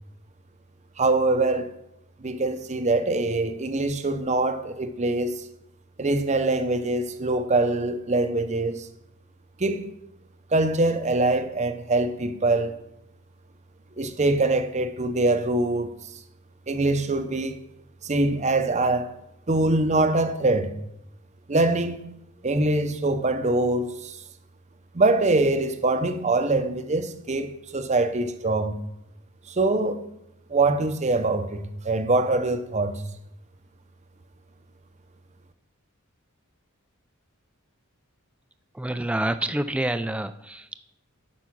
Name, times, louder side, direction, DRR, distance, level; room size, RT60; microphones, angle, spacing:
voice 1, 1.0-1.7 2.2-5.4 6.0-8.9 9.6-9.9 10.5-12.8 14.0-15.9 16.7-17.6 18.0-19.1 19.5-20.7 21.5-22.0 22.4-24.2 24.9-28.8 29.5-30.0 30.5-33.0, right 2 dB, 30° right, 0.6 m, -23 dB
voice 2, 38.7-40.8, right 1 dB, 5° right, 0.3 m, -27 dB
8.3 x 5.5 x 6.1 m
head